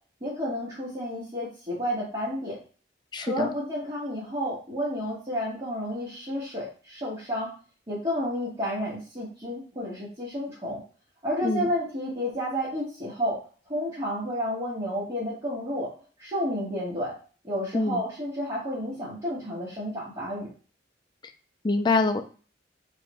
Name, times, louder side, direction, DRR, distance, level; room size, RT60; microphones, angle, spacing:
voice 1, 0.2-2.6 3.2-7.5 7.9-10.8 11.2-13.4 13.7-15.9 16.2-17.1 17.4-20.5, equal, 30° right, -8 dB, 1.4 m, -31 dB
voice 2, 3.1-3.5 11.4-11.7 17.7-18.0 21.6-22.2, left 3 dB, 25° left, 6 dB, 0.4 m, -25 dB
3.7 x 3.4 x 3.0 m, 0.38 s
head